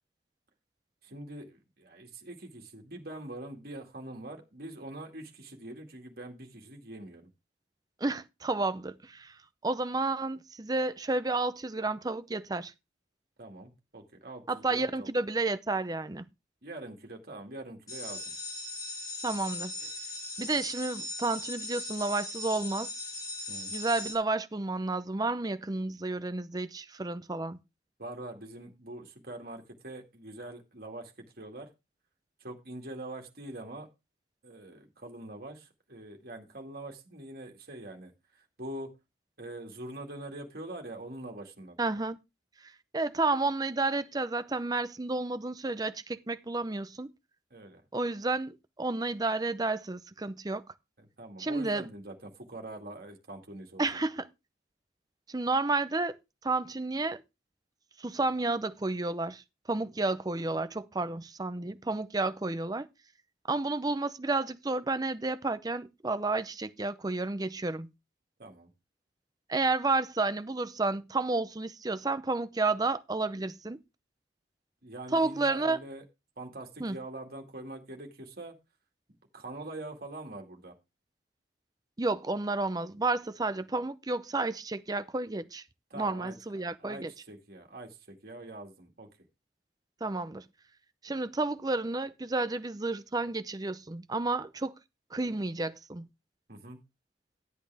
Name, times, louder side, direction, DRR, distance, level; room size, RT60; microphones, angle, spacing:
voice 1, 1.0-7.3 13.4-15.1 16.6-18.2 23.5-23.7 28.0-31.7 32.4-33.9 34.4-38.1 38.6-38.9 39.4-41.8 47.5-47.8 51.0-54.0 68.4-68.7 74.8-76.0 76.4-78.6 79.3-80.7 85.9-86.4 86.8-89.1 96.5-96.8, right 1 dB, 55° right, 2.2 m, -44 dB
voice 2, 8.0-9.3 9.6-12.7 14.5-16.2 19.2-19.7 20.4-22.9 23.7-27.6 41.8-42.2 42.9-47.1 47.9-50.6 51.4-51.9 53.8-54.3 55.3-56.2 56.4-57.2 58.0-59.4 59.7-62.9 63.5-67.9 69.5-73.8 75.1-75.8 76.8-77.0 82.0-85.6 85.9-87.1 90.0-90.4 91.0-94.7 95.1-96.1, right 3 dB, 20° right, 0.6 m, -31 dB
sound 1, 17.9-24.1, left 2 dB, 20° left, 3.0 m, -39 dB
12.5 x 8.5 x 3.4 m
head